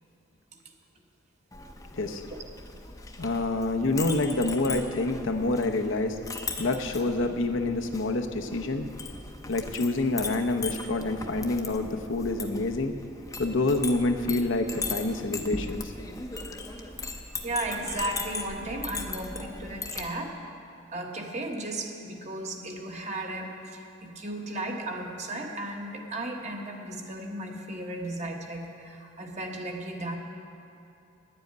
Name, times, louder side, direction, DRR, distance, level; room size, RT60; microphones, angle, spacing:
Chink clink, 1.5-20.1, left 3 dB, 15° left, 0.6 m, -38 dB
voice 1, 3.2-6.2 6.6-8.9 9.5-12.9 13.4-15.9, left 2 dB, 80° left, 5 dB, 0.8 m, -27 dB
voice 2, 17.4-20.4 20.9-30.2, right 1 dB, 35° right, 2 dB, 1.1 m, -35 dB
10.5 x 7.7 x 9.4 m, 2.7 s
head